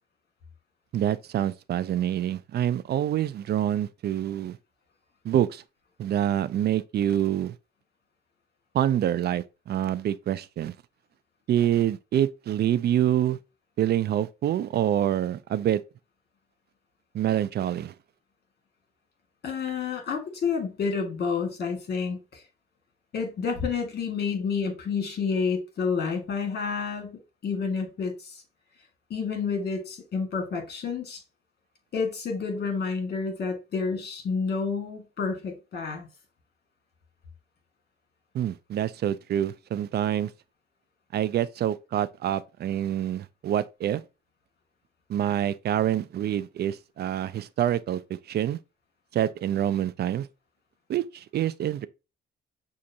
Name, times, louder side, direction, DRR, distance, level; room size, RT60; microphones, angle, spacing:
voice 1, 0.9-4.6 5.2-5.6 6.0-7.5 8.7-10.7 11.5-13.4 13.8-15.8 17.1-17.9 38.3-40.3 41.1-44.0 45.1-48.0 48.3-48.6 49.1-50.3 50.9-51.9, right 11 dB, 55° right, 0.4 m, -26 dB
voice 2, 19.4-22.4 23.1-28.4 29.1-31.2 31.9-36.1, left 5 dB, 55° left, 1.7 m, -29 dB
6.1 x 2.5 x 2.8 m
cardioid pair, 90°, 20 cm